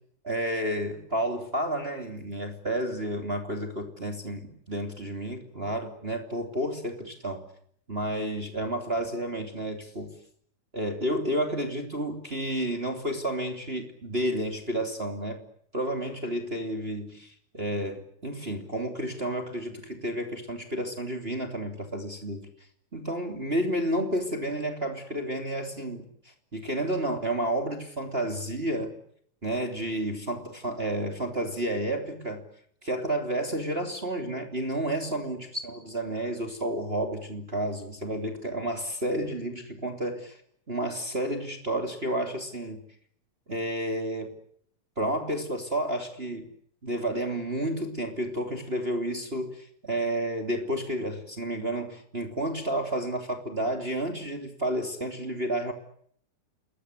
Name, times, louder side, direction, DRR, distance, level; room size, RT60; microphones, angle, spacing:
voice 1, 0.2-7.4 7.9-10.1 10.7-15.4 15.7-22.5 22.9-26.1 26.5-28.9 29.4-32.4 32.8-40.4 40.7-42.8 43.5-44.3 45.0-46.5 46.8-55.7, right 1 dB, 20° right, 4 dB, 3.0 m, -31 dB
30.0 x 20.5 x 8.3 m, 0.65 s
omnidirectional pair, 3.6 m